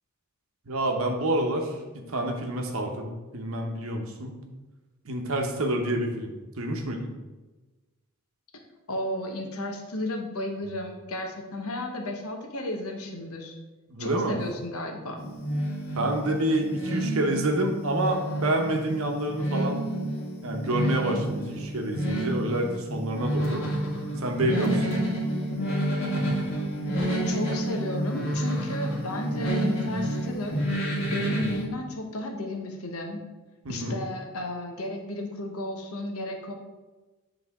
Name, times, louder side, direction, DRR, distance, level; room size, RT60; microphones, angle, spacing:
voice 1, 0.7-4.4 5.0-7.1 13.9-14.4 15.9-19.9 20.4-23.7 24.2-24.8 29.8-30.0 31.3-31.4 33.6-34.0, right 1 dB, 70° right, 3 dB, 0.9 m, -28 dB
voice 2, 8.9-13.5 14.0-15.2 27.3-33.2 33.7-36.5, left 1 dB, 80° left, 3 dB, 1.0 m, -34 dB
sound 1, 15.2-31.6, right 1 dB, 65° left, 1.8 m, -29 dB
7.9 x 3.5 x 3.6 m, 1.2 s
head